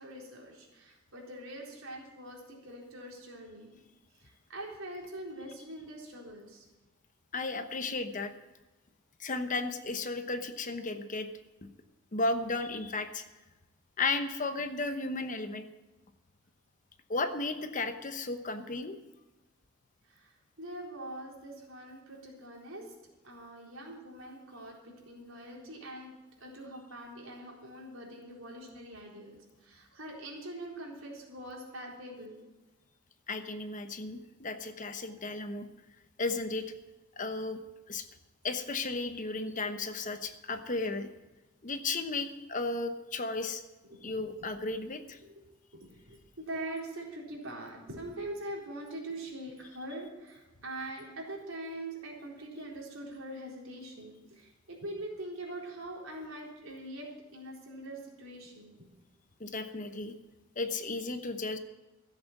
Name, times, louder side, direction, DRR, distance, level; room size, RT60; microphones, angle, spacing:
voice 1, 0.0-3.8 4.2-6.7 20.1-22.9 23.2-26.1 26.4-32.4 35.0-35.1 43.9-44.3 44.7-44.8 45.2-45.4 45.7-58.7, right 1 dB, 80° right, -2 dB, 4.0 m, -43 dB
voice 2, 7.3-8.3 9.2-11.3 11.6-11.7 12.1-13.2 14.0-15.6 17.1-19.0 33.3-35.6 36.2-36.6 37.2-37.6 37.9-38.0 38.4-41.1 41.6-43.6 44.0-45.2 59.4-60.2 60.6-61.6, left 3 dB, 40° left, 8 dB, 1.0 m, -34 dB
14.5 x 8.2 x 7.2 m, 1.1 s
head